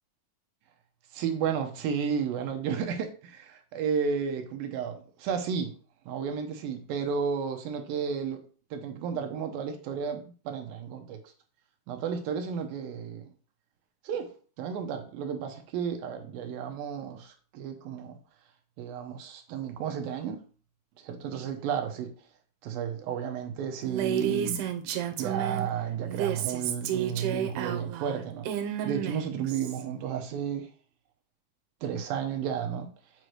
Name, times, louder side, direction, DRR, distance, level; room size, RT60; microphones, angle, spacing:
voice 1, 1.1-5.7 6.1-8.4 8.7-11.2 11.9-13.2 14.0-14.3 14.6-18.2 18.8-20.4 21.0-22.1 22.6-24.9 25.2-30.7 31.8-32.9, right 7 dB, 75° right, 2.3 m, -32 dB
Female speech woman speaking, 23.8-25.7 26.1-29.8, right 10 dB, 90° right, 2.7 m, -31 dB
8.0 x 5.1 x 3.1 m
omnidirectional pair, 4.7 m